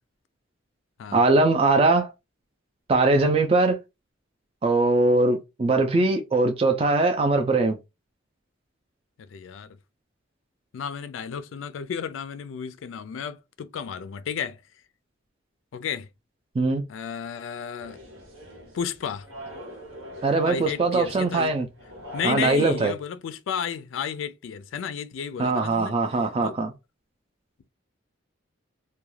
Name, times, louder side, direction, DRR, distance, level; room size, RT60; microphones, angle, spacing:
voice 1, 1.1-2.1 2.9-3.8 4.6-7.8 16.6-16.8 20.2-21.7 22.2-22.9 25.4-26.7, right 3 dB, 30° right, 0.3 m, -21 dB
voice 2, 9.2-9.8 10.7-14.6 15.7-16.1 16.9-18.0 18.7-19.3 20.4-21.6 22.1-26.0 26.4-26.7, left 7 dB, 75° left, 0.3 m, -33 dB
sound 1, 17.8-22.9, equal, 85° right, 1.1 m, -42 dB
2.3 x 2.2 x 3.1 m
head